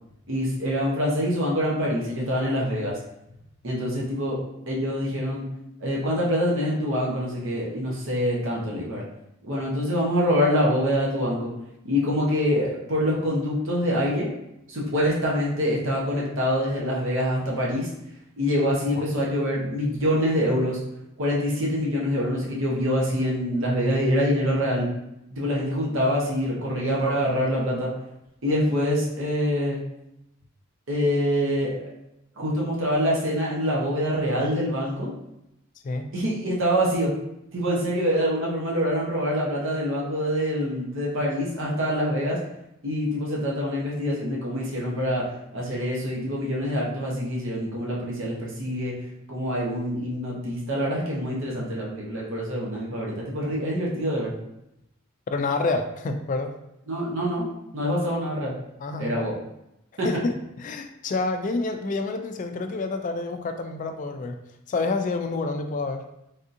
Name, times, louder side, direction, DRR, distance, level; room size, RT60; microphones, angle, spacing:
voice 1, 0.3-3.0 3.6-4.4 4.7-5.4 5.8-9.0 9.4-11.5 11.8-14.3 14.7-17.9 18.4-20.8 21.2-24.9 25.3-27.9 28.4-29.8 30.9-31.8 32.4-35.1 36.1-37.1 37.5-42.4 42.8-45.3 45.5-48.9 49.3-54.3 56.9-57.4 57.7-58.5 59.0-59.3 60.0-60.1, equal, 65° right, -4 dB, 0.8 m, -25 dB
voice 2, 55.3-56.5 58.8-59.2 60.0-64.4 64.7-66.0, left 3 dB, 40° left, 6 dB, 0.3 m, -28 dB
3.4 x 2.7 x 2.5 m, 0.83 s
head